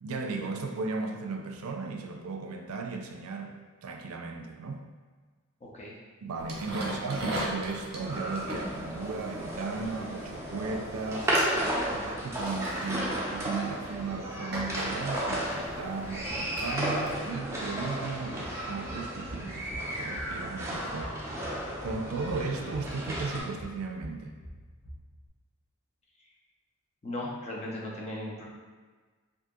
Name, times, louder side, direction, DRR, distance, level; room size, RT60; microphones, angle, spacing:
voice 1, 0.0-3.5 3.8-4.9 6.2-24.3, right 4 dB, 90° right, 4 dB, 0.4 m, -36 dB
voice 2, 5.6-5.9 6.8-6.9 27.0-28.4, left 1 dB, 30° left, -3 dB, 0.5 m, -37 dB
sound 1, 6.4-10.6 10.9-11.1 11.3-11.6 12.4-12.9 13.7-13.8 14.5-17.3, right 1 dB, 50° right, 0.7 m, -38 dB
sound 2, 8.0-23.4, right 1 dB, 15° right, 0.5 m, -34 dB
sound 3, 18.4-25.3, equal, 75° left, 0.8 m, -46 dB
2.7 x 2.6 x 3.6 m, 1.4 s
head